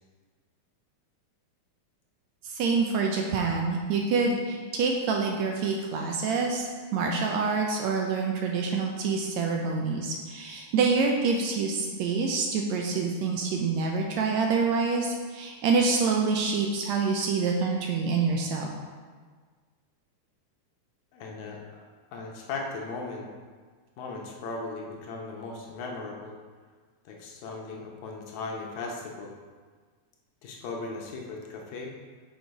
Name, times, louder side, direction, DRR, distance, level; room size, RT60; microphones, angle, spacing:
voice 1, 2.4-18.7, right 4 dB, 80° right, 1 dB, 1.7 m, -26 dB
voice 2, 21.1-21.6 22.1-23.3 24.0-26.4 27.1-29.3 30.4-31.9, left 3 dB, 75° left, 0 dB, 2.0 m, -37 dB
6.5 x 4.8 x 4.6 m, 1.5 s
omnidirectional pair, 3.5 m